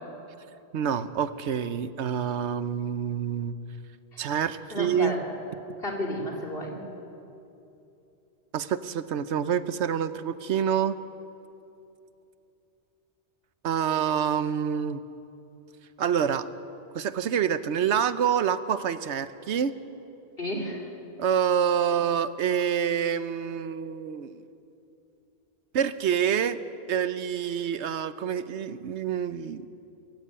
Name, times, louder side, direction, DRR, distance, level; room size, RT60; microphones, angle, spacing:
voice 1, 0.7-3.5 4.2-5.2 8.5-11.0 13.6-15.0 16.0-16.5 16.9-19.7 21.2-24.4 25.7-26.6 26.9-29.6, right 8 dB, 80° right, 13 dB, 1.0 m, -27 dB
voice 2, 4.7-5.2 5.8-6.8 20.4-20.9, left 1 dB, 55° left, 0 dB, 3.1 m, -32 dB
21.0 x 15.5 x 8.7 m, 2.8 s
omnidirectional pair, 1.2 m